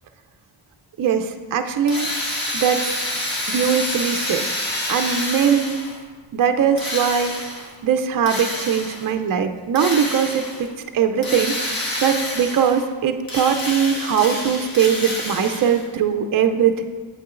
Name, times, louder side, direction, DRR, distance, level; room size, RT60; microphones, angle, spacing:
voice 1, 1.0-2.2 2.5-2.9 3.5-4.5 4.9-5.8 6.3-10.7 10.9-16.8, right 7 dB, 45° right, 6 dB, 0.5 m, -21 dB
Drill, 1.9-6.0 6.8-7.7 8.3-9.1 9.8-10.7 11.2-12.9 13.2-15.9, left 1 dB, 45° left, 1.4 m, -28 dB
8.7 x 8.6 x 2.4 m, 1.4 s
wide cardioid pair, 115°, 48 cm